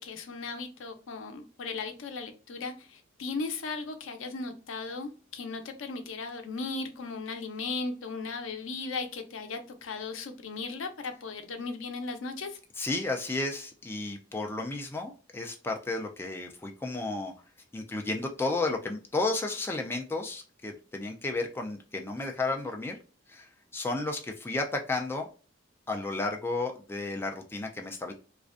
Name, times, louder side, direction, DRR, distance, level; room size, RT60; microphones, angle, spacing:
voice 1, 0.0-12.6 22.2-22.7, left 4 dB, 90° left, 6 dB, 0.5 m, -37 dB
voice 2, 12.8-17.3 17.7-23.0 23.3-25.3 25.9-28.1, left 2 dB, 10° left, 2 dB, 0.3 m, -33 dB
2.5 x 2.1 x 2.3 m, 0.36 s
head